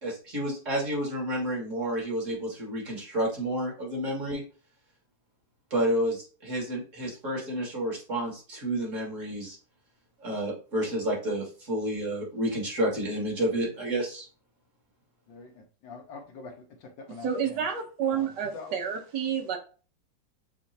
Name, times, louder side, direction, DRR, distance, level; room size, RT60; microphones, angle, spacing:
voice 1, 0.0-4.4 5.7-9.6 10.2-14.3, right 1 dB, 40° right, 2.0 m, -30 dB
voice 2, 15.3-17.7 18.1-18.7, left 4 dB, 70° left, 1.4 m, -45 dB
voice 3, 17.2-19.6, right 7 dB, 65° right, 1.5 m, -29 dB
7.3 x 2.5 x 2.7 m
omnidirectional pair, 2.2 m